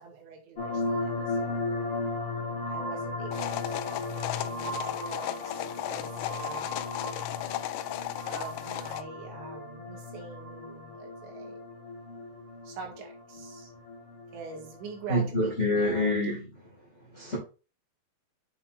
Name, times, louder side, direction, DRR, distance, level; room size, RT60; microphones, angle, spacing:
voice 1, 0.0-1.7 2.7-5.6 5.9-6.8 8.3-11.6 12.7-13.7 14.3-16.1, right 5 dB, 85° right, 4.2 m, -44 dB
sound 1, 0.6-15.1, left 2 dB, 25° left, 1.5 m, -36 dB
sound 2, 3.3-9.0, left 14 dB, 85° left, 2.6 m, -35 dB
voice 2, 15.1-16.5 17.1-17.4, left 1 dB, 60° left, 0.7 m, -26 dB
8.3 x 5.9 x 2.5 m
omnidirectional pair, 5.1 m